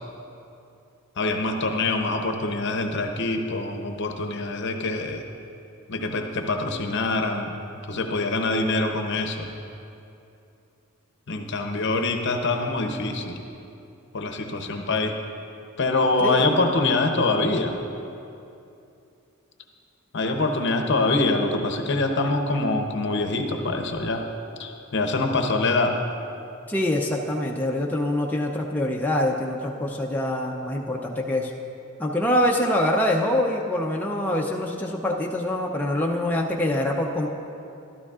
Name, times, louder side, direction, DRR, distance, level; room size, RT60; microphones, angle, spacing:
voice 1, 1.2-5.2 5.9-7.6 7.9-9.5 11.3-13.4 14.1-15.2 15.8-17.8 20.1-24.2 24.6-26.0, left 2 dB, 55° left, 4 dB, 0.7 m, -24 dB
voice 2, 26.7-31.5 32.0-37.3, left 1 dB, 10° left, -2 dB, 0.5 m, -25 dB
12.5 x 12.5 x 2.4 m, 2.7 s
head